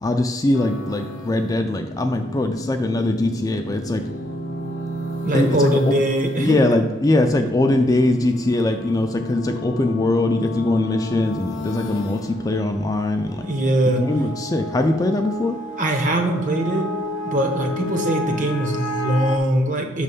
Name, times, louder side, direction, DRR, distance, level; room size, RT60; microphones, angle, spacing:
voice 1, 0.0-4.0 5.3-6.0 6.4-13.5 13.8-15.6, left 2 dB, 20° left, 4 dB, 0.3 m, -21 dB
sound 1, 0.5-19.4, left 1 dB, 75° left, 0.6 m, -32 dB
voice 2, 5.2-6.6 13.4-14.0 15.8-16.8 17.3-20.0, right 1 dB, 40° right, 4 dB, 0.8 m, -21 dB
6.2 x 3.2 x 5.3 m, 1.1 s
head